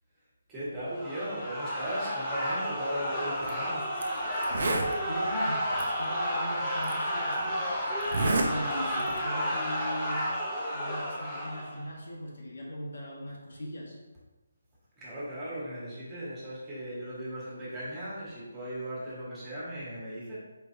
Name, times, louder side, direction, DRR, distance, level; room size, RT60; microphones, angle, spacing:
voice 1, 0.5-3.9 15.0-20.4, equal, 10° right, -8 dB, 1.2 m, -37 dB
sound 1, 0.9-11.9, equal, 10° left, 0.7 m, -31 dB
Zipper (clothing), 3.4-3.5 4.0-4.1 4.4-4.9 5.8-5.9 6.8-6.9 8.0-8.5 8.9-9.2, right 2 dB, 60° right, 0.6 m, -28 dB
voice 2, 4.5-8.1 8.4-10.3 10.7-14.0, equal, 75° left, -3 dB, 1.1 m, -40 dB
4.4 x 3.2 x 2.6 m, 1.1 s
hypercardioid pair, 165°, 0 cm